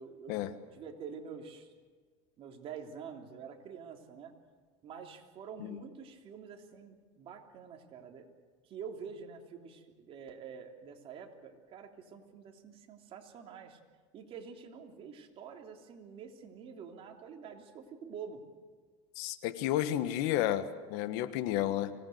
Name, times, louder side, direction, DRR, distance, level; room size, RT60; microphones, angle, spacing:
voice 1, 0.0-1.7 2.4-4.3 4.8-8.3 8.6-13.8 14.1-18.4, right 6 dB, 45° right, 2 dB, 3.3 m, -47 dB
voice 2, 19.2-21.9, left 12 dB, 70° left, 11 dB, 1.5 m, -32 dB
25.0 x 18.5 x 8.0 m, 1.5 s
supercardioid pair, 125°, 14 cm